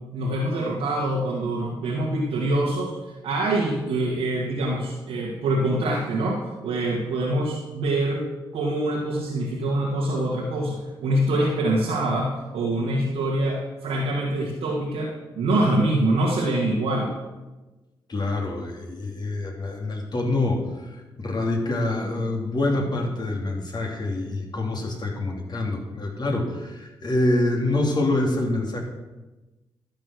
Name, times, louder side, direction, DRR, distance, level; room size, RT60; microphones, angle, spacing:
voice 1, 0.1-3.0 3.2-8.3 8.5-17.1, right 1 dB, 85° right, -4 dB, 1.8 m, -25 dB
voice 2, 18.1-20.6 21.2-28.8, left 2 dB, 45° left, 1 dB, 3.2 m, -26 dB
12.0 x 7.6 x 6.4 m, 1.1 s
supercardioid pair, 50°, 10 cm